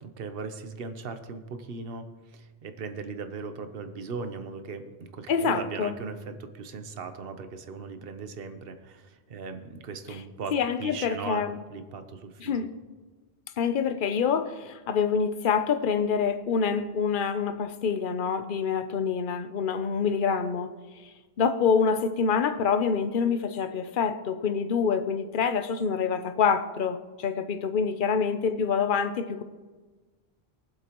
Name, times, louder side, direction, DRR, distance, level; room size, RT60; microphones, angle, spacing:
voice 1, 0.0-10.5 10.8-11.4 11.7-12.7, right 4 dB, 60° right, 8 dB, 1.1 m, -38 dB
voice 2, 5.3-6.0 10.5-11.6 12.4-12.7 13.6-20.7 21.4-29.4, left 6 dB, 55° left, 10 dB, 0.8 m, -26 dB
23.0 x 7.8 x 3.0 m, 1.3 s
omnidirectional pair, 1.1 m